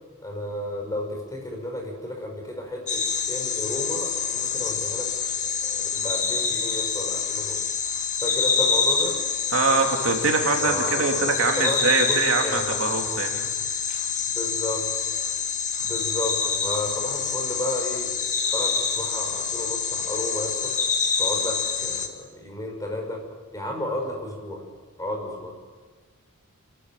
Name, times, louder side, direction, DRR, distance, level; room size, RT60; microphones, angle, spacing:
voice 1, 0.2-5.1 5.4-7.7 8.2-9.1 10.6-12.8 14.2-14.8 15.8-20.7 21.2-23.2 23.5-24.7 25.0-25.6, left 1 dB, 15° left, 0 dB, 5.7 m, -32 dB
sound 1, 2.9-22.1, left 6 dB, 35° left, 1.9 m, -26 dB
voice 2, 9.5-13.5, right 3 dB, 65° right, 3 dB, 2.8 m, -23 dB
29.5 x 13.5 x 9.0 m, 1.4 s
head